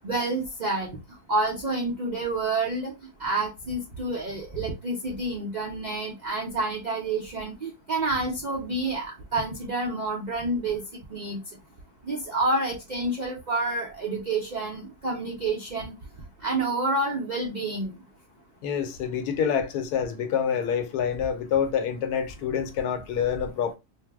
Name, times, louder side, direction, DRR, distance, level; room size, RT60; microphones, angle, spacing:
voice 1, 0.0-1.0 1.3-2.9 3.2-10.8 11.1-11.4 12.0-15.9 16.4-17.9, right 2 dB, 80° right, 0.4 m, -28 dB
voice 2, 18.6-23.7, left 7 dB, 90° left, 1.1 m, -27 dB
2.6 x 2.0 x 3.3 m
omnidirectional pair, 1.6 m